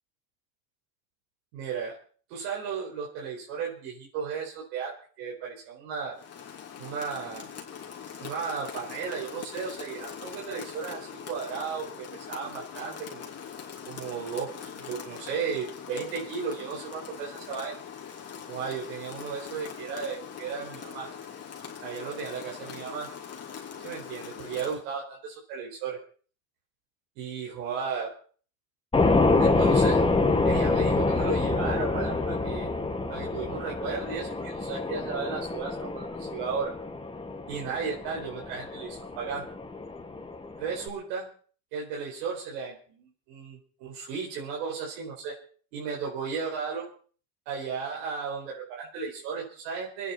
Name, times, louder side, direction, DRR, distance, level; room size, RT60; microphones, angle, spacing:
voice 1, 1.5-1.9 2.3-6.2 6.8-7.5 8.2-13.3 13.9-17.8 18.5-21.1 21.8-23.1 23.8-26.0 27.2-28.1 29.4-30.0 30.4-32.7 33.1-36.7 37.5-39.4 40.6-41.3 41.7-45.3 45.7-46.9 47.5-50.1, right 6 dB, 85° right, -3 dB, 4.8 m, -35 dB
Rain, 6.1-24.9, left 7 dB, 30° left, 3.3 m, -42 dB
sound 1, 28.9-40.9, left 3 dB, 10° left, 1.7 m, -26 dB
27.5 x 10.0 x 4.2 m, 0.43 s
supercardioid pair, 120°, 48 cm